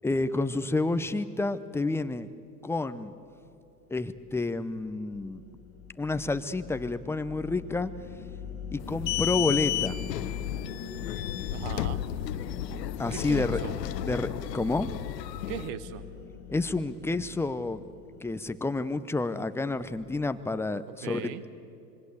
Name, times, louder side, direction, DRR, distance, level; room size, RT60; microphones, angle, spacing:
voice 1, 0.0-2.3 2.6-3.1 3.9-5.4 6.0-7.9 8.7-10.0 13.0-13.6 14.0-14.9 16.5-17.8 18.2-21.5, left 3 dB, 5° left, 12 dB, 0.7 m, -29 dB
sound 1, 4.2-18.7, left 7 dB, 40° left, 2.1 m, -41 dB
sound 2, 8.8-15.7, left 13 dB, 75° left, 0.8 m, -33 dB
voice 2, 11.5-12.0 13.1-13.7 15.5-16.1 21.0-21.4, right 9 dB, 55° right, 13 dB, 1.6 m, -38 dB
26.0 x 22.0 x 8.2 m, 2.6 s
hypercardioid pair, 100°, 50 cm